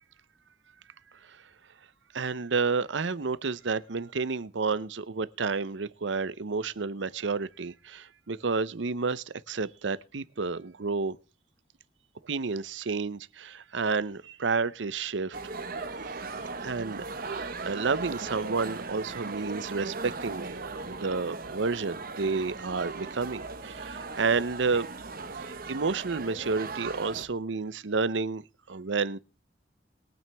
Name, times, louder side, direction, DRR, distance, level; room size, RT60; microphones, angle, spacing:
voice 1, 2.1-11.2 12.2-15.4 16.5-20.6 20.9-24.9 25.3-29.2, right 4 dB, 75° right, 0.7 m, -30 dB
sound 1, 15.3-27.3, right 3 dB, 50° right, 1.4 m, -38 dB
21.5 x 9.2 x 3.5 m
head